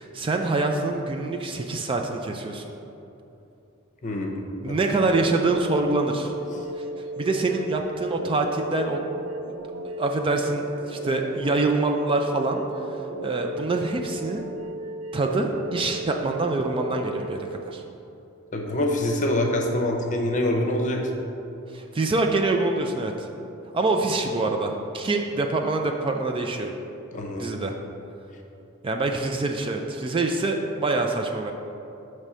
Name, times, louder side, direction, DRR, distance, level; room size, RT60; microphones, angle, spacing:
voice 1, 0.0-2.7 4.6-6.3 7.2-9.0 9.8-12.6 13.2-14.5 15.1-17.8 21.7-23.3 23.7-26.7 27.4-27.7 28.8-31.5, right 3 dB, 25° right, 3 dB, 0.3 m, -25 dB
voice 2, 4.0-4.3 4.7-4.8 18.5-21.1 27.1-27.5, left 1 dB, 35° left, 1 dB, 0.8 m, -25 dB
sound 1, 5.0-17.4, right 1 dB, 90° right, 0.4 m, -35 dB
6.8 x 3.2 x 6.1 m, 2.8 s
head